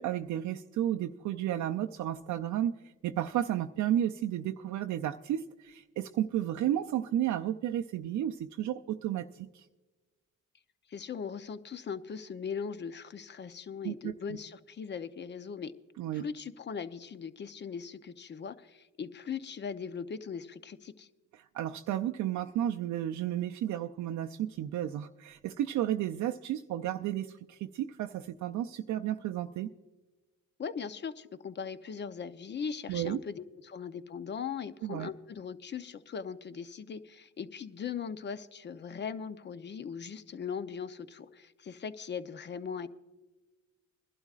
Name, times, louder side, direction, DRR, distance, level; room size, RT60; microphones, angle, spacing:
voice 1, 0.0-9.7 13.8-14.1 16.0-16.2 21.3-29.7 32.9-33.2 34.8-35.1, right 11 dB, 70° right, 4 dB, 0.5 m, -32 dB
voice 2, 10.9-15.7 16.1-21.1 30.6-42.9, left 6 dB, 35° left, 12 dB, 0.7 m, -39 dB
22.5 x 12.0 x 2.4 m, 1.2 s
cardioid pair, 90°, 30 cm